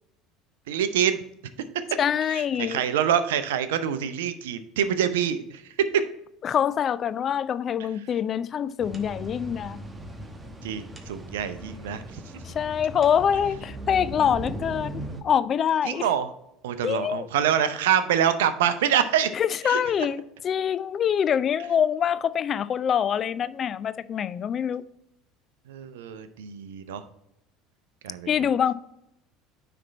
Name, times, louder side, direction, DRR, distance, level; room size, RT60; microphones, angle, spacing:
voice 1, 0.7-1.2 2.3-5.6 5.9-6.0 10.6-12.2 15.9-16.3 16.6-19.3 19.6-19.8 25.7-27.0 28.0-28.3, right 9 dB, 75° right, 0.6 m, -25 dB
voice 2, 2.0-2.8 6.4-9.8 12.4-16.1 16.8-17.3 19.3-24.8 28.3-28.7, left 8 dB, 40° left, 0.4 m, -25 dB
sound 1, 8.8-15.2, right 1 dB, 20° right, 1.0 m, -38 dB
9.7 x 3.4 x 4.1 m
hypercardioid pair, 70°, 0 cm